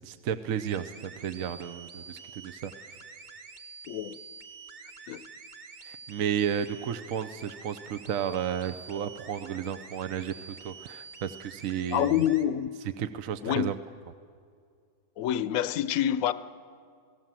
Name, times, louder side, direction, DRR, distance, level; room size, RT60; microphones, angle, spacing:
voice 1, 0.0-2.7 5.8-12.2 13.0-13.8, right 8 dB, 60° right, 1.1 m, -33 dB
sound 1, 0.6-12.4, right 5 dB, 35° right, 0.9 m, -47 dB
voice 2, 3.9-4.2 5.1-5.2 11.9-12.7 13.4-13.7 15.2-16.3, left 11 dB, 65° left, 1.1 m, -27 dB
29.5 x 17.5 x 7.5 m
omnidirectional pair, 1.8 m